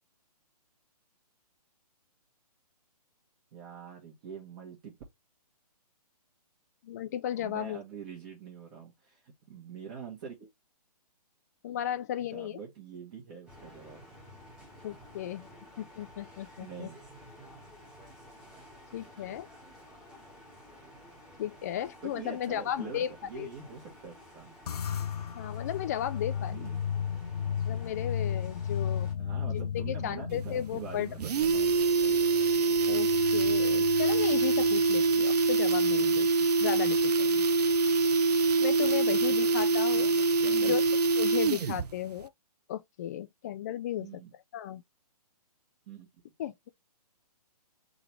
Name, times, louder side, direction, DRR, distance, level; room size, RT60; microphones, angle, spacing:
voice 1, 3.5-5.0 7.3-10.5 12.3-14.1 14.6-14.7 16.6-17.0 19.1-19.6 22.0-24.6 26.5-26.8 29.2-32.3 39.0-39.4 39.9-40.8 44.0-44.3 45.9-46.1, right 6 dB, 30° right, 1.3 m, -45 dB
voice 2, 6.8-7.8 11.6-12.6 14.8-15.5 15.8-16.9 18.9-19.5 21.4-23.5 25.3-26.7 27.7-29.1 29.7-31.1 32.9-36.3 36.6-37.4 38.6-40.1 40.6-40.8 41.2-42.3 42.7-44.1 44.5-44.8 46.4-46.7, left 11 dB, 25° left, 0.4 m, -35 dB
sound 1, 13.5-29.1, equal, 5° right, 1.2 m, -52 dB
sound 2, 24.7-35.3, left 8 dB, 70° left, 0.7 m, -35 dB
sound 3, 30.3-30.4 30.7-30.8 31.1-41.9 42.2-42.3, right 3 dB, 80° right, 0.5 m, -25 dB
3.9 x 3.3 x 3.1 m
hypercardioid pair, 145°, 20 cm